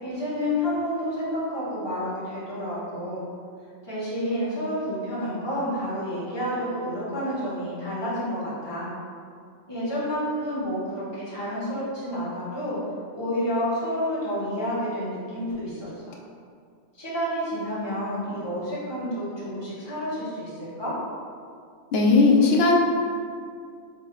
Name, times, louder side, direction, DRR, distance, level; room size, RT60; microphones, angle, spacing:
voice 1, 0.0-3.2 3.8-8.9 9.7-12.8 13.1-15.9 16.9-21.0, equal, 20° left, -10 dB, 1.3 m, -29 dB
voice 2, 21.9-22.7, left 3 dB, 60° left, -1 dB, 0.7 m, -17 dB
3.8 x 3.5 x 3.0 m, 2.2 s
omnidirectional pair, 1.4 m